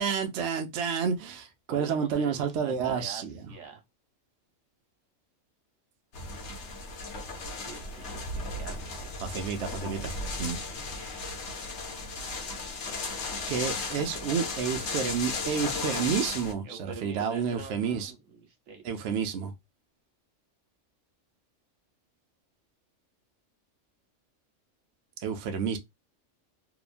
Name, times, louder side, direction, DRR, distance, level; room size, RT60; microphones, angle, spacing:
voice 1, 0.0-3.4 9.2-10.1 10.4-10.6 10.9-11.3 13.5-18.1 18.8-19.5 25.2-25.8, right 6 dB, 70° right, 0.8 m, -30 dB
voice 2, 1.7-3.8 7.6-9.2 16.6-18.8, right 6 dB, 90° right, 1.2 m, -44 dB
sound 1, 6.1-16.5, left 3 dB, 65° left, 1.0 m, -35 dB
2.9 x 2.1 x 2.4 m
omnidirectional pair, 1.3 m